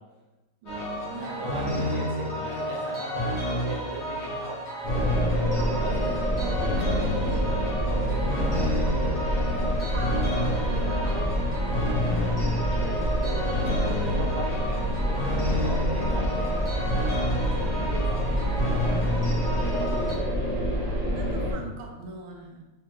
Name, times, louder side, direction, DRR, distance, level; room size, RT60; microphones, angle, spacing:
voice 1, 0.6-1.5 5.6-9.2 9.9-11.7 21.1-22.7, right 3 dB, 80° right, 2 dB, 1.4 m, -41 dB
sound 1, 0.7-20.1, left 1 dB, 45° left, 1.0 m, -30 dB
voice 2, 1.2-4.8 5.2-5.3 5.8-5.9 8.6-9.0 9.6-9.8 10.9-11.2 11.7-13.5 14.0-14.8 15.3-17.1 17.5-20.3, right 2 dB, 50° right, -6 dB, 0.3 m, -39 dB
sound 2, 4.8-21.5, equal, 30° right, 0.8 m, -27 dB
3.5 x 3.4 x 3.0 m, 1.1 s
omnidirectional pair, 2.2 m